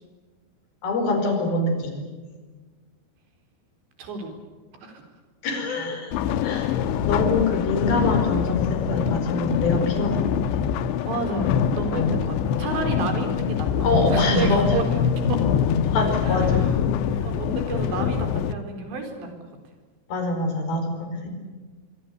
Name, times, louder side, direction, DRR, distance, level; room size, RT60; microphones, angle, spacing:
voice 1, 0.8-1.9 5.4-6.2 6.4-6.7 7.0-10.4 13.8-14.7 15.8-16.7 20.1-21.3, left 2 dB, 60° left, 5 dB, 6.7 m, -25 dB
voice 2, 4.0-4.3 4.8-5.0 6.3-6.4 11.1-13.7 14.1-15.4 16.2-16.7 17.0-19.5, right 4 dB, 75° right, 5 dB, 6.4 m, -31 dB
sound 1, 6.1-18.5, left 8 dB, 85° left, 3.3 m, -24 dB
25.0 x 24.0 x 8.4 m, 1.3 s
omnidirectional pair, 5.1 m